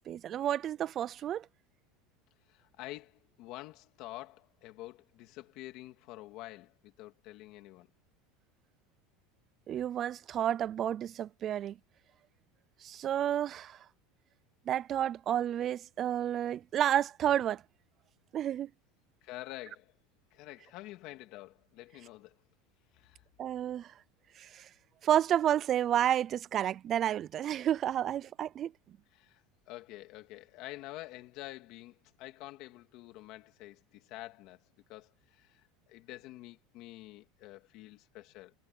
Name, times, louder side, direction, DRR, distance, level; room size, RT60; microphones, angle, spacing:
voice 1, 0.1-1.5 9.7-11.8 12.8-13.8 14.7-17.6 18.3-18.7 23.4-23.9 24.4-24.7 25.0-28.7, right 10 dB, 25° right, 0.3 m, -30 dB
voice 2, 2.5-7.9 19.2-20.0 20.3-22.4 22.9-23.2 29.1-34.6 34.9-35.6 35.9-38.5, left 17 dB, 40° left, 2.7 m, -48 dB
supercardioid pair, 180°, 0 cm